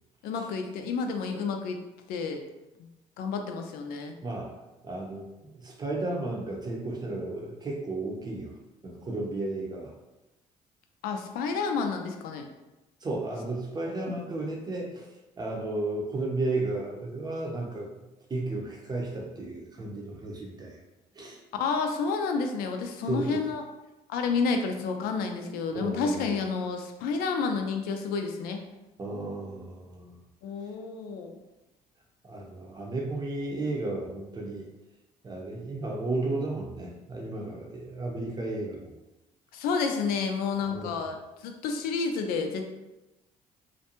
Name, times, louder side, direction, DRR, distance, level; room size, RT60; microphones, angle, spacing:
voice 1, 0.2-1.8 2.1-2.4 2.8-2.9 3.2-4.2 11.0-12.4 14.1-14.2 21.5-23.6 24.1-28.6 30.4-31.4 39.5-41.2 41.4-42.7, left 5 dB, 85° left, 5 dB, 0.4 m, -30 dB
voice 2, 4.2-4.5 4.8-5.3 5.5-8.5 8.8-9.9 13.0-15.1 15.4-17.9 18.3-20.8 21.1-21.4 23.1-23.4 25.7-26.3 29.0-30.2 32.2-34.7 35.2-38.9 40.6-41.0, right 2 dB, 25° right, -1 dB, 0.6 m, -33 dB
2.5 x 2.1 x 2.8 m, 1.0 s
cardioid pair, 90°, 15 cm